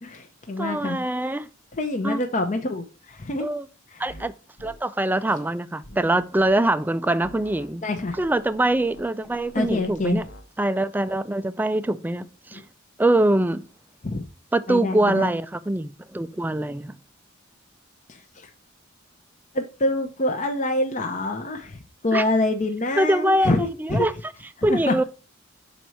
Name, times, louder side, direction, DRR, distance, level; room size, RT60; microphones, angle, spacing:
voice 1, 0.0-1.0 1.7-3.5 3.9-4.0 7.8-8.2 9.5-10.2 12.5-12.6 14.0-14.2 14.7-15.3 18.1-18.5 19.5-24.1 24.6-25.0, left 2 dB, 40° left, 0.7 m, -26 dB
voice 2, 0.6-1.5 2.0-2.2 3.4-3.7 4.0-4.3 4.6-7.8 8.2-10.2 10.6-12.6 13.0-13.6 14.5-17.0 22.1-22.2 23.0-24.2 24.6-25.0, right 1 dB, 10° right, 0.3 m, -23 dB
sound 1, 4.1-4.3 4.6-4.8 5.8-6.6 7.2-7.7 8.0-10.4, left 1 dB, 85° left, 1.1 m, -45 dB
6.1 x 4.1 x 4.5 m
head